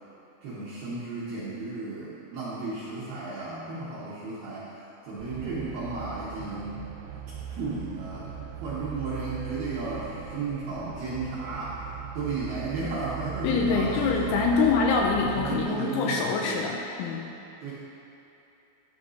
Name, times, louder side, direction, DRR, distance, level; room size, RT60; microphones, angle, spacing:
voice 1, 0.4-4.8 5.0-6.8 7.5-11.8 12.1-14.6 15.3-16.6 17.6-17.7, right 3 dB, 70° right, -9 dB, 2.5 m, -34 dB
sound 1, 5.2-15.6, right 8 dB, 85° right, 3.3 m, -39 dB
voice 2, 13.4-17.3, left 4 dB, 85° left, 0 dB, 2.9 m, -25 dB
12.5 x 11.0 x 2.7 m, 2.9 s
omnidirectional pair, 6.0 m